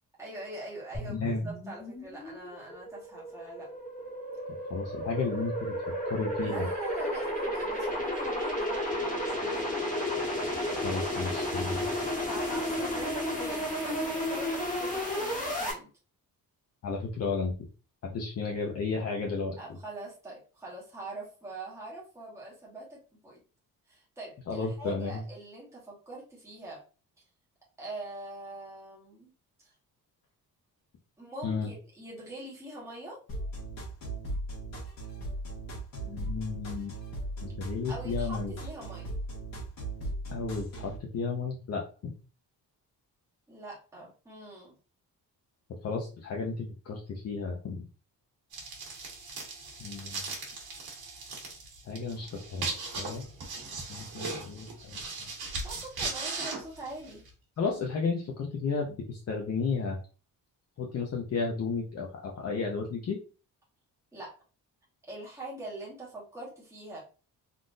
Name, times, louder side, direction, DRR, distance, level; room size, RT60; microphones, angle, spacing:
voice 1, 0.2-3.7 6.4-9.6 12.2-15.9 19.6-23.4 23.9-26.8 27.8-29.3 31.2-33.2 37.9-39.1 43.5-44.7 55.6-57.2 64.1-64.3 65.1-67.0, right 1 dB, 10° right, -5 dB, 1.1 m, -43 dB
sound 1, 0.9-15.7, left 1 dB, 20° left, 1.1 m, -33 dB
voice 2, 1.1-1.5 4.7-5.7 6.1-6.7 10.8-11.9 16.8-17.5 18.1-19.6 24.5-25.2 31.4-31.7 36.0-36.9 37.4-38.5 40.3-42.1 45.8-47.8 49.8-50.2 51.9-52.3 52.5-53.2 53.9-55.0 57.6-60.0 60.8-63.2, left 4 dB, 45° left, 0 dB, 0.6 m, -33 dB
sound 2, 33.3-41.0, right 1 dB, 65° left, 1.4 m, -37 dB
sound 3, 48.5-57.3, right 3 dB, 80° right, 1.3 m, -38 dB
3.7 x 2.5 x 2.5 m, 0.36 s
wide cardioid pair, 170°, 37 cm